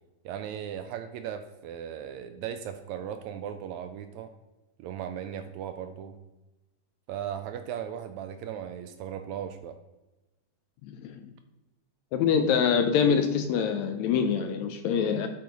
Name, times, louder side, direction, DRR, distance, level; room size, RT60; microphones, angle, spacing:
voice 1, 0.2-4.3 4.8-6.2 7.1-9.8, right 9 dB, 80° right, 8 dB, 1.7 m, -37 dB
voice 2, 10.8-11.2 12.1-15.3, left 7 dB, 80° left, 7 dB, 1.7 m, -25 dB
8.6 x 3.9 x 4.7 m, 1.0 s
omnidirectional pair, 3.5 m